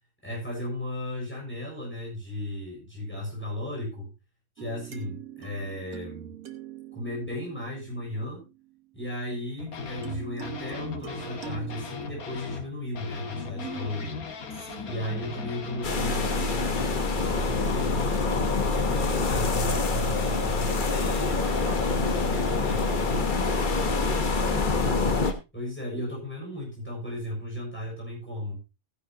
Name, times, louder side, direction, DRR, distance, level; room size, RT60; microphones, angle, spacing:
voice 1, 0.2-4.1 4.6-6.3 6.9-8.4 8.9-14.0 14.8-18.2 18.7-23.3 25.5-28.6, left 1 dB, 5° left, -2 dB, 6.5 m, -35 dB
sound 1, 4.6-8.9 10.0-11.8, right 10 dB, 75° right, 1.6 m, -43 dB
sound 2, 9.6-12.7 12.9-24.7 25.2-25.3, left 5 dB, 85° left, 1.9 m, -39 dB
voice 2, 13.5-14.1 14.5-15.1 23.4-24.9, right 1 dB, 60° right, 1 dB, 2.9 m, -42 dB
sound 3, 15.8-25.3, left 3 dB, 35° left, 1.1 m, -26 dB
15.0 x 10.5 x 2.8 m, 0.26 s
omnidirectional pair, 1.5 m